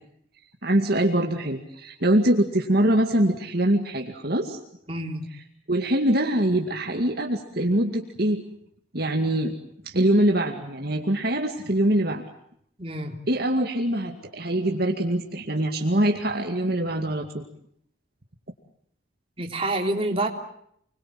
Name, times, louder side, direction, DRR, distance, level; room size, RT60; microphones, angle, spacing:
voice 1, 0.6-4.6 5.7-8.4 8.9-9.5 9.8-12.2 13.3-17.4, right 1 dB, 50° right, 2 dB, 2.2 m, -23 dB
voice 2, 4.9-5.2 12.8-13.1 19.4-20.3, right 2 dB, 30° right, 2 dB, 3.4 m, -27 dB
29.5 x 22.0 x 7.7 m, 0.70 s
head